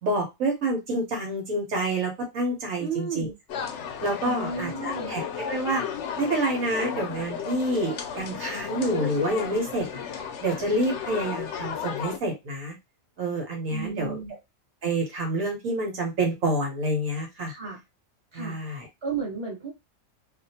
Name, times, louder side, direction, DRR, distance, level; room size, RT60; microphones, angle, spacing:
voice 1, 0.0-3.3 4.0-5.8 6.2-10.0 10.4-12.7 13.2-14.2 14.8-17.5 18.3-18.9, right 1 dB, 75° right, -1 dB, 1.4 m, -28 dB
voice 2, 2.8-3.3 4.2-5.1 13.7-14.3 17.5-17.8 18.3-18.6 19.0-19.7, right 5 dB, 20° right, -2 dB, 1.4 m, -33 dB
sound 1, 3.5-12.2, left 7 dB, 65° left, 0.8 m, -34 dB
2.7 x 2.5 x 2.7 m, 0.21 s
omnidirectional pair, 1.4 m